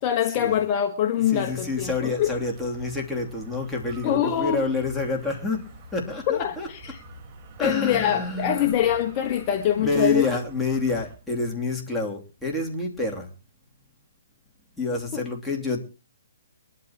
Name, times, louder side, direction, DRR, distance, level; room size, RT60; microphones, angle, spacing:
voice 1, 0.0-2.3 4.0-4.6 6.3-7.0 7.6-10.2 15.1-15.2, left 10 dB, 30° left, 1.3 m, -24 dB
voice 2, 1.3-6.7 7.6-8.7 9.8-13.3 14.8-15.8, left 3 dB, 5° left, 2.9 m, -28 dB
sound 1, 1.3-11.2, right 1 dB, 25° right, 4.2 m, -46 dB
23.0 x 12.0 x 3.0 m
hypercardioid pair, 150°, 0 cm